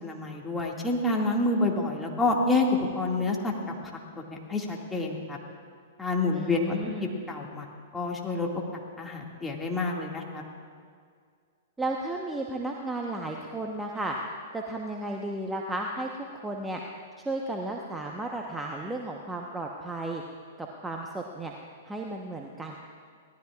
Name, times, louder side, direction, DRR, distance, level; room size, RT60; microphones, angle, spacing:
voice 1, 0.0-2.7 3.0-3.5 4.3-5.4 6.0-7.6 7.9-10.4, left 2 dB, 10° left, -1 dB, 2.2 m, -28 dB
voice 2, 6.3-7.1 11.8-14.2 14.5-16.1 16.4-16.8 17.2-20.2 20.6-21.5 21.8-22.8, right 2 dB, 10° right, 0 dB, 1.1 m, -34 dB
24.5 x 18.0 x 2.5 m, 2.1 s
figure-of-eight pair, 105°, 0 cm